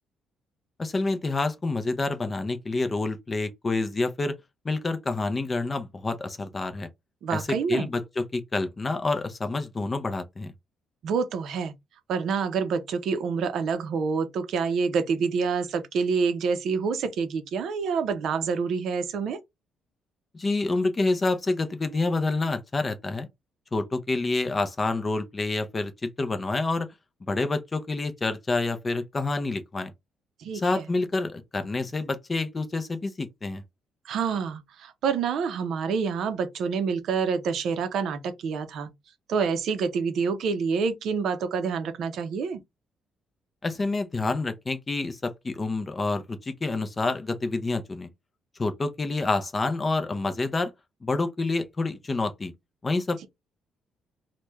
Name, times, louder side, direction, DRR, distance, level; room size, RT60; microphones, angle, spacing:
voice 1, 0.8-4.3 4.6-6.9 7.3-10.5 20.3-23.3 23.7-26.9 27.2-29.9 30.5-33.6 43.6-48.1 48.6-50.7 51.0-52.5 52.8-53.3, left 3 dB, 20° left, 0.4 m, -28 dB
voice 2, 7.2-7.9 11.0-11.7 12.1-19.4 30.4-30.9 34.1-38.9 39.3-42.6, right 5 dB, 60° right, 0.5 m, -27 dB
3.0 x 2.1 x 3.3 m
cardioid pair, 155°, 0 cm